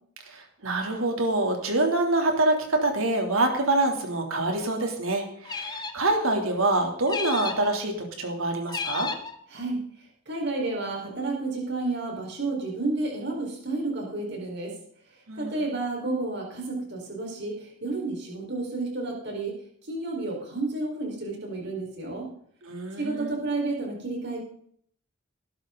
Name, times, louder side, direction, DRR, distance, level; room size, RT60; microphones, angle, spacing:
voice 1, 0.3-9.1 15.3-15.6 22.6-23.4, right 2 dB, 75° right, 3 dB, 3.1 m, -26 dB
sound 1, 5.4-6.1 7.1-7.7 8.7-9.4, left 4 dB, 20° left, 1.0 m, -33 dB
voice 2, 10.3-14.7 15.4-19.6 19.9-22.3 23.0-24.4, right 2 dB, 55° right, 0 dB, 4.6 m, -31 dB
19.0 x 11.0 x 3.9 m, 0.62 s
head